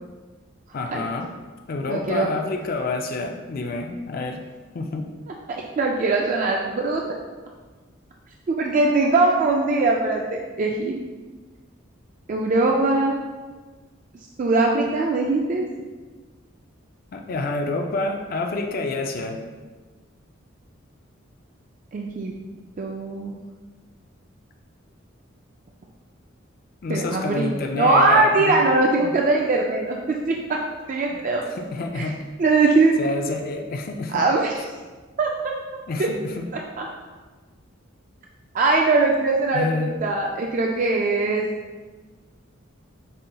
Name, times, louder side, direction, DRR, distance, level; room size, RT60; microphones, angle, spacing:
voice 1, 0.7-1.3 1.7-4.4 4.7-5.1 17.1-19.4 26.8-28.7 29.0-29.1 31.1-31.2 31.6-32.2 33.0-34.3 35.9-36.5 39.5-40.0, left 3 dB, 45° left, 3 dB, 0.4 m, -28 dB
voice 2, 1.9-2.3 5.8-7.0 8.5-11.0 12.3-13.2 14.4-15.7 21.9-22.3 22.8-23.4 26.9-30.6 30.9-31.4 32.0-32.1 32.4-32.9 34.1-34.5 35.2-35.5 36.8-36.9 38.5-41.5, right 3 dB, 40° right, 0 dB, 0.3 m, -21 dB
5.5 x 3.8 x 2.2 m, 1.3 s
head